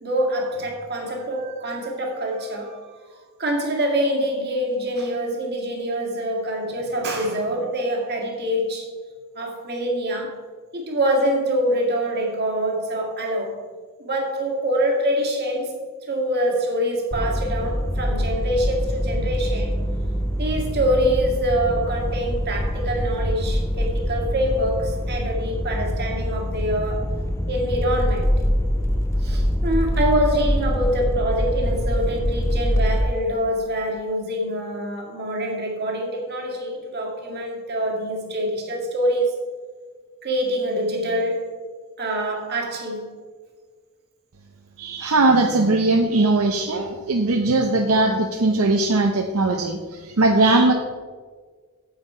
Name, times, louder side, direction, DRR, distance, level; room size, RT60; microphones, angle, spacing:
voice 1, 0.0-2.8 3.4-8.9 9.4-10.4 10.7-13.6 14.0-15.7 16.1-19.8 20.4-27.1 27.5-28.4 29.2-39.4 40.2-41.5 42.0-43.1, equal, 45° right, 0 dB, 1.9 m, -25 dB
sound 1, 17.1-33.0, equal, 15° left, 0.5 m, -24 dB
voice 2, 44.8-50.7, right 2 dB, 70° right, 3 dB, 0.7 m, -19 dB
8.6 x 8.0 x 4.3 m, 1.6 s
head